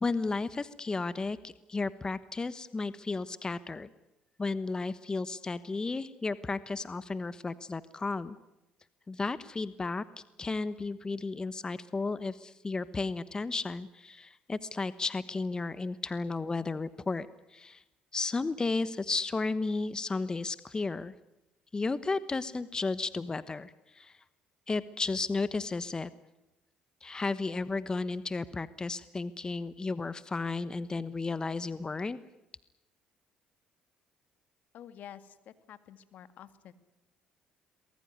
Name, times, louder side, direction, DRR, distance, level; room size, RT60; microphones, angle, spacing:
voice 1, 0.0-3.9 4.4-8.4 9.1-10.0 10.4-17.8 18.1-21.1 21.7-24.2 24.7-26.1 27.0-32.2, left 3 dB, 25° left, 15 dB, 1.2 m, -33 dB
voice 2, 34.7-36.7, left 10 dB, 65° left, 12 dB, 2.0 m, -49 dB
23.5 x 20.5 x 9.5 m, 0.95 s
supercardioid pair, 70°, 3 cm